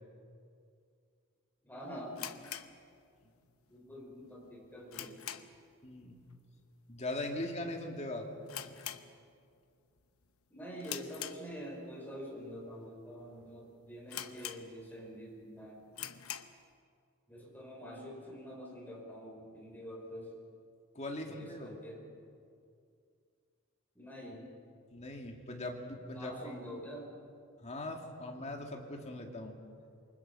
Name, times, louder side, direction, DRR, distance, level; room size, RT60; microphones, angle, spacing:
voice 1, 1.6-2.2 3.7-5.2 10.5-15.8 17.3-20.3 21.3-22.0 24.0-24.5 26.2-27.1, equal, 10° left, -2 dB, 5.3 m, -46 dB
sound 1, 2.1-3.5 3.8-3.9 4.4-5.7 6.0-6.3 6.6-6.7 7.4-7.7 7.9-8.0 8.4-9.6 10.0-10.3 10.8-11.9 12.5-12.6 13.2-13.3 13.5-13.6 14.1-15.1 15.4-15.5 15.9-16.6, left 11 dB, 75° left, 1.0 m, -44 dB
voice 2, 5.8-6.2 6.9-8.3 20.9-21.7 24.9-26.3 27.6-29.5, left 1 dB, 30° left, 2 dB, 2.4 m, -40 dB
28.0 x 24.5 x 5.6 m, 2.3 s
head